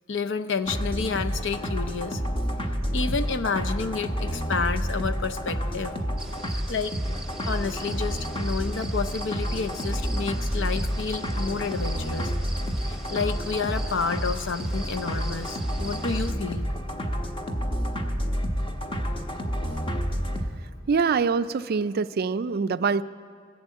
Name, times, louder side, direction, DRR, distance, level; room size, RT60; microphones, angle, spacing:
voice 1, 0.1-2.2 2.9-5.9 6.7-7.0 7.4-12.3 12.8-16.7, left 5 dB, 65° left, 9 dB, 0.7 m, -30 dB
sound 1, 0.7-20.5, equal, 25° left, 1.0 m, -29 dB
sound 2, 6.2-16.3, right 2 dB, 5° right, 0.9 m, -42 dB
voice 2, 20.9-23.0, right 5 dB, 50° right, 14 dB, 0.4 m, -24 dB
15.0 x 11.5 x 8.4 m, 2.1 s
head